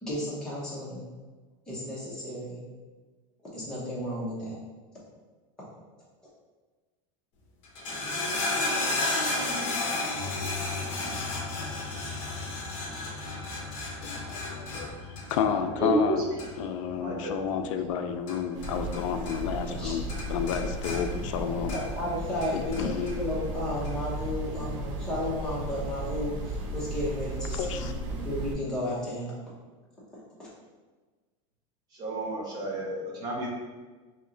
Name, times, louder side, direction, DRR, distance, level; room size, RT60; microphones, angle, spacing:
voice 1, 0.0-1.0 1.7-2.6 3.4-4.6 19.7-19.9 21.1-29.3 30.1-30.5, left 1 dB, 5° left, -8 dB, 0.8 m, -34 dB
sound 1, 7.6-19.0 19.3-19.8 20.1-22.1 22.4-23.2 23.8-23.9, left 2 dB, 35° left, 0.8 m, -33 dB
voice 2, 14.0-16.3 16.6-21.7 22.5-23.1 27.5-27.9, left 7 dB, 80° left, 7 dB, 0.4 m, -31 dB
voice 3, 15.8-16.2 17.0-17.3 17.6-17.7 31.9-33.5, right 2 dB, 25° right, -2 dB, 0.6 m, -30 dB
sound 2, 18.5-28.5, right 1 dB, 70° right, 0.6 m, -35 dB
3.1 x 2.8 x 3.7 m, 1.3 s
supercardioid pair, 180°, 16 cm